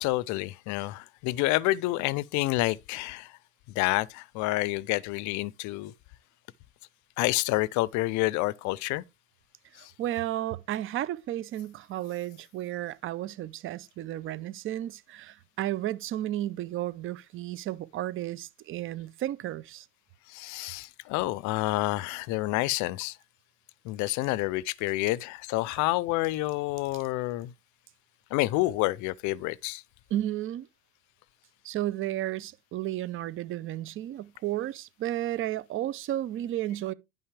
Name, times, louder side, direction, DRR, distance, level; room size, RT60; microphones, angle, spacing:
voice 1, 0.0-3.4 3.7-5.9 7.2-9.0 9.8-9.9 20.3-23.2 23.8-27.5 28.3-29.8, left 19 dB, 55° left, 0.5 m, -28 dB
voice 2, 9.8-19.9 30.1-30.7 31.6-36.9, right 13 dB, 35° right, 0.6 m, -33 dB
10.5 x 5.6 x 3.3 m
supercardioid pair, 125°, 35 cm